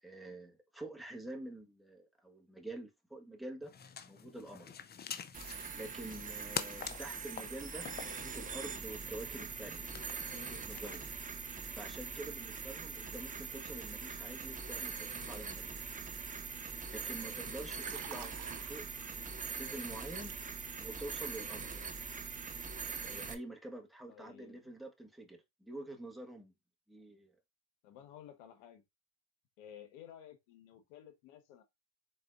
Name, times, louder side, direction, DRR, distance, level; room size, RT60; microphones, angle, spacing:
voice 1, 0.0-3.7 4.1-4.7 5.7-9.8 10.2-11.1 11.7-15.9 16.9-18.3 18.6-20.3 20.8-21.8 23.0-26.5 26.9-27.3, right 1 dB, ahead, 1.5 m, -47 dB
sound 1, 3.6-11.2, left 7 dB, 25° left, 0.6 m, -46 dB
sound 2, 5.3-23.3, right 5 dB, 20° right, 0.7 m, -43 dB
Liquid, 17.5-20.8 21.1-21.4, right 12 dB, 80° right, 0.7 m, -52 dB
voice 2, 24.1-24.6 27.8-28.8 29.6-31.6, left 10 dB, 80° left, 1.4 m, -54 dB
4.7 x 3.9 x 2.5 m
supercardioid pair, 90°, 39 cm